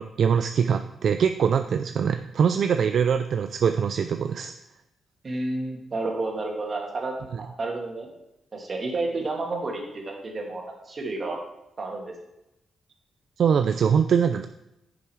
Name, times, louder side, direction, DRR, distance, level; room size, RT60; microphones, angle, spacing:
voice 1, 0.0-4.5 13.4-14.5, right 7 dB, 65° right, 8 dB, 0.4 m, -23 dB
voice 2, 5.2-8.1 8.5-11.4 11.8-12.1, right 2 dB, 40° right, 0 dB, 2.4 m, -31 dB
10.0 x 7.0 x 4.7 m, 0.87 s
cardioid pair, 105°, 0 cm